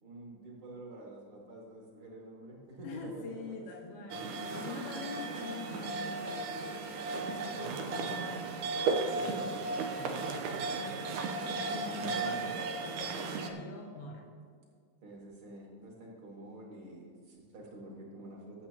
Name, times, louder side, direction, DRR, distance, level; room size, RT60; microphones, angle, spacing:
voice 1, 0.0-3.6 7.6-7.9 9.1-10.9 11.9-12.5 15.0-18.7, right 1 dB, 45° right, -2 dB, 3.1 m, -48 dB
voice 2, 2.8-6.6 7.2-8.5 10.8-11.1 11.6-12.5 12.8-14.3, left 3 dB, 55° left, 0 dB, 2.2 m, -44 dB
sound 1, 4.1-13.5, right 3 dB, 85° right, 2.5 m, -35 dB
22.0 x 8.1 x 3.0 m, 2.1 s
omnidirectional pair, 3.6 m